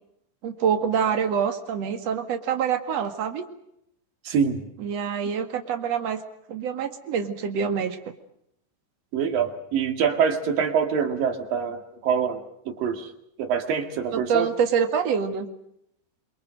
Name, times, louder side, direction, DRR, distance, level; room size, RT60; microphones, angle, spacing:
voice 1, 0.4-3.5 4.8-6.2 6.5-8.0 14.1-15.5, right 7 dB, 50° right, 6 dB, 2.9 m, -26 dB
voice 2, 4.3-4.7 9.1-13.1 13.4-14.5, right 7 dB, 80° right, 5 dB, 4.0 m, -25 dB
27.5 x 23.5 x 6.4 m, 0.76 s
omnidirectional pair, 4.0 m